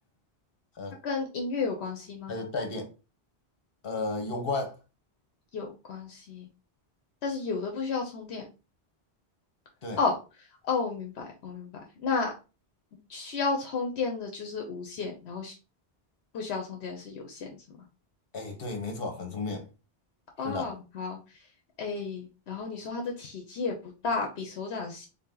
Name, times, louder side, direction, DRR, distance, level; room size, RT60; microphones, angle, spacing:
voice 1, 1.0-2.3 5.5-6.5 7.2-8.4 10.0-10.2 10.6-11.7 12.0-12.3 13.1-15.5 16.3-17.8 20.4-21.4 21.8-23.8 24.0-25.1, left 4 dB, 80° left, 1.0 m, -32 dB
voice 2, 2.3-2.9 3.8-4.7 9.8-10.0 18.3-19.7 20.4-20.7, left 3 dB, 60° left, 1.2 m, -33 dB
3.7 x 2.8 x 3.7 m
omnidirectional pair, 1.1 m